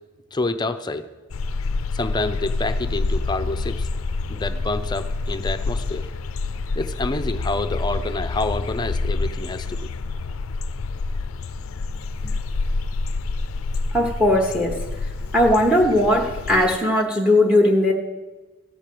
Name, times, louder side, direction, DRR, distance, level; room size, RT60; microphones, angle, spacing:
voice 1, 0.3-1.1 1.9-3.9 4.3-6.1 6.8-9.9, left 2 dB, 20° left, 9 dB, 0.6 m, -27 dB
sound 1, 1.3-16.8, left 3 dB, 85° left, 0.5 m, -27 dB
voice 2, 13.9-14.8 15.3-17.9, left 1 dB, 5° right, 1 dB, 1.0 m, -18 dB
14.5 x 5.0 x 7.6 m, 1.2 s
head